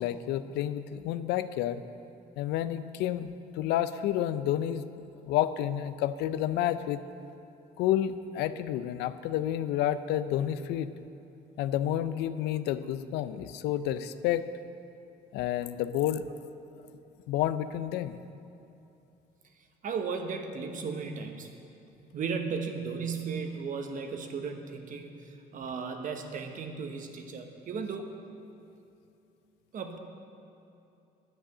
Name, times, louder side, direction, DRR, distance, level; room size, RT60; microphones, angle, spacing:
voice 1, 0.0-1.8 2.4-3.3 3.6-4.8 5.3-7.0 7.8-10.9 11.6-14.5 15.3-16.3 17.3-18.2, left 11 dB, 85° left, 13 dB, 0.5 m, -30 dB
voice 2, 19.8-21.5 22.1-28.1 29.7-30.0, right 5 dB, 50° right, 5 dB, 1.2 m, -35 dB
10.0 x 8.8 x 6.7 m, 2.8 s
cardioid pair, 110°, 17 cm